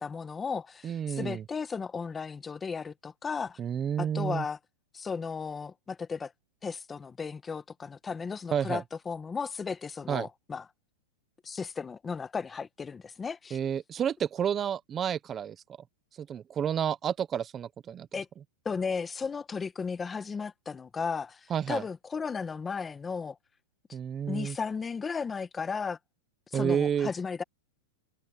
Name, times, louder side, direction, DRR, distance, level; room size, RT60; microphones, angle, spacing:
voice 1, 0.0-3.6 4.0-4.6 4.9-6.3 6.6-10.6 11.4-13.6 18.1-18.3 18.6-23.4 24.3-26.0 26.5-27.4, left 5 dB, 15° left, 1.3 m, -35 dB
voice 2, 0.8-1.4 3.6-4.4 8.5-8.8 10.1-10.3 13.5-15.6 16.2-18.1 21.5-21.8 23.9-24.6 26.5-27.1, right 8 dB, 25° right, 1.0 m, -30 dB
hypercardioid pair, 140°, 0 cm